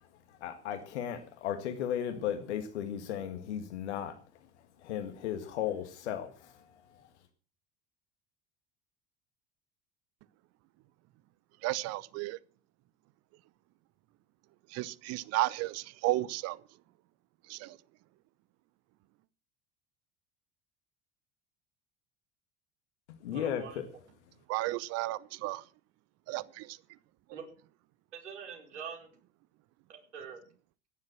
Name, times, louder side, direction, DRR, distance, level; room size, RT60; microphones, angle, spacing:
voice 1, 0.3-4.2 4.8-7.1 23.1-23.6, left 9 dB, 65° left, 1.9 m, -36 dB
voice 2, 11.6-12.4 14.7-16.6 17.5-17.7 24.5-25.6 26.3-26.7, right 18 dB, 45° right, 0.8 m, -33 dB
voice 3, 23.3-23.8 27.3-27.5 28.1-29.1 29.9-30.4, right 7 dB, 70° right, 4.9 m, -44 dB
16.0 x 10.5 x 7.4 m
figure-of-eight pair, 70°, 36 cm